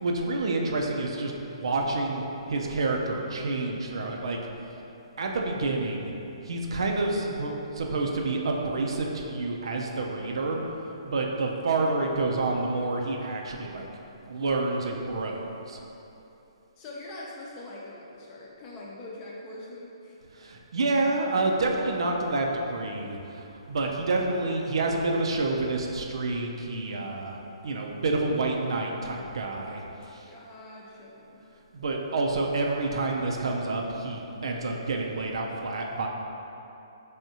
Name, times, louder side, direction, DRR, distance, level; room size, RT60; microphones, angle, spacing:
voice 1, 0.0-4.4 5.2-6.1 6.5-10.6 11.0-13.9 14.3-15.8 20.3-29.8 30.1-30.3 31.7-36.1, right 2 dB, 65° right, 1 dB, 0.4 m, -28 dB
voice 2, 16.8-20.2 30.3-31.5, left 2 dB, 30° left, -4 dB, 0.6 m, -43 dB
3.5 x 3.4 x 2.7 m, 2.9 s
figure-of-eight pair, 135°, 3 cm